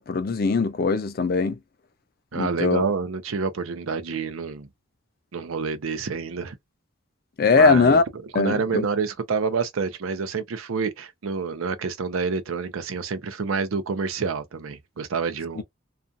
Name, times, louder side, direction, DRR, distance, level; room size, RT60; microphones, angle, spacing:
voice 1, 0.0-1.6 2.3-2.8 7.4-8.0 8.3-8.9, left 4 dB, 45° left, 0.4 m, -20 dB
voice 2, 2.3-4.7 5.3-6.5 7.5-8.0 8.3-15.6, right 5 dB, 85° right, 0.5 m, -28 dB
2.4 x 2.3 x 2.5 m
head